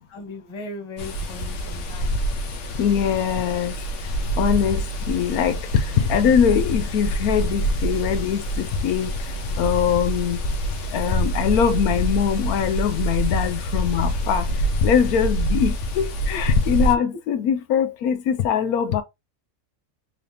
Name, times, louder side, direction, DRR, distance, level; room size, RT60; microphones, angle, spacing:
voice 1, 0.1-2.2 16.3-16.4, left 3 dB, 25° left, 0.8 m, -37 dB
sound 1, 1.0-16.9, equal, 60° left, 1.0 m, -26 dB
voice 2, 2.8-3.7 4.4-9.1 9.6-10.4 10.9-14.4 14.8-19.0, left 8 dB, 75° left, 1.1 m, -22 dB
3.8 x 3.4 x 2.7 m
omnidirectional pair, 1.6 m